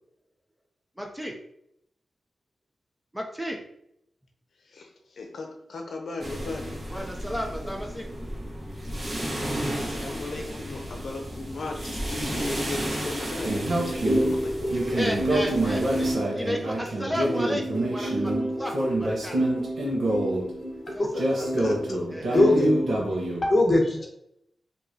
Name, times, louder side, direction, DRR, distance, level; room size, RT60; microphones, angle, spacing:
voice 1, 1.0-1.3 3.1-3.6 6.9-8.1 14.7-19.7 20.9-21.2 22.1-22.6, equal, 5° right, 1 dB, 0.6 m, -34 dB
voice 2, 5.2-6.8 9.7-14.6 21.1-22.1, left 3 dB, 70° left, 2 dB, 0.7 m, -37 dB
sound 1, 6.2-16.1, equal, 35° right, 1.5 m, -33 dB
sound 2, 13.4-23.4, right 1 dB, 80° right, 1.0 m, -26 dB
voice 3, 22.3-23.1 23.4-24.1, left 1 dB, 30° left, 1 dB, 1.0 m, -21 dB
4.8 x 2.9 x 2.8 m, 0.74 s
wide cardioid pair, 125°, 0 cm